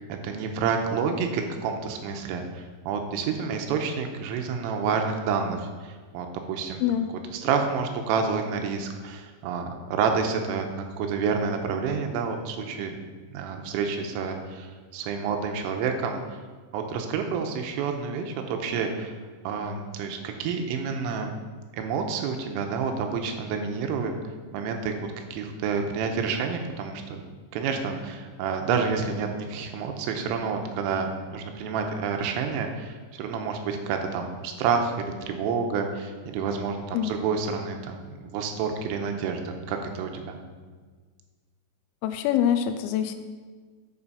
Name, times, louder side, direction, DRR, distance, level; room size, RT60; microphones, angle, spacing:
voice 1, 0.0-6.8 7.3-13.0 13.3-16.2 16.7-19.2 19.4-21.3 21.8-24.1 24.5-24.9 25.3-27.2 27.5-40.4, right 5 dB, 85° right, 4 dB, 3.2 m, -29 dB
voice 2, 42.0-43.2, left 10 dB, 85° left, 8 dB, 3.2 m, -24 dB
9.6 x 5.4 x 5.6 m, 1.4 s
omnidirectional pair, 5.9 m